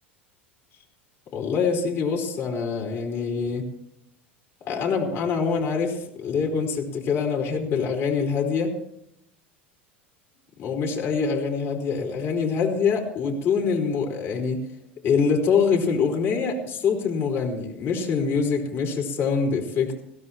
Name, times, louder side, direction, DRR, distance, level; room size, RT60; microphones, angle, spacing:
voice 1, 1.3-3.7 4.6-8.7 10.6-14.6 15.0-20.0, left 5 dB, 40° left, 2 dB, 4.6 m, -25 dB
21.5 x 16.0 x 3.0 m, 0.77 s
figure-of-eight pair, 80°, 6 cm